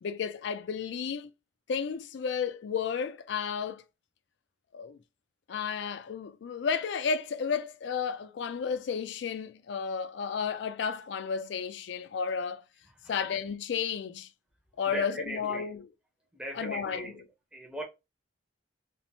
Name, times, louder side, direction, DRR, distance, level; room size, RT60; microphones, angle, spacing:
voice 1, 0.0-1.3 1.7-3.8 4.7-5.0 5.5-12.6 13.1-14.3 14.8-15.9 16.5-17.2, left 6 dB, 65° left, 0.3 m, -32 dB
voice 2, 14.9-15.7 16.3-17.2 17.5-17.8, right 1 dB, 5° right, 0.5 m, -38 dB
2.9 x 2.0 x 2.6 m
head